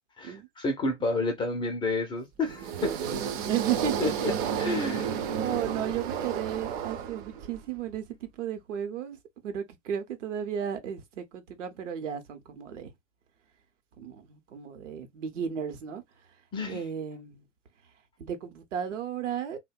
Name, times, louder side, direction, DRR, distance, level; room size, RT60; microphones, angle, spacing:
voice 1, 0.2-2.9 4.0-4.1 4.6-5.2 16.5-16.8, left 2 dB, 15° left, 0.3 m, -30 dB
sound 1, 2.5-7.6, right 8 dB, 40° right, 0.5 m, -32 dB
voice 2, 2.8-3.2 3.5-4.3 5.4-9.2 9.4-12.9 14.0-16.0 16.7-17.4 18.2-19.6, right 8 dB, 70° right, 0.8 m, -34 dB
2.7 x 2.1 x 2.2 m
figure-of-eight pair, 95°, 38 cm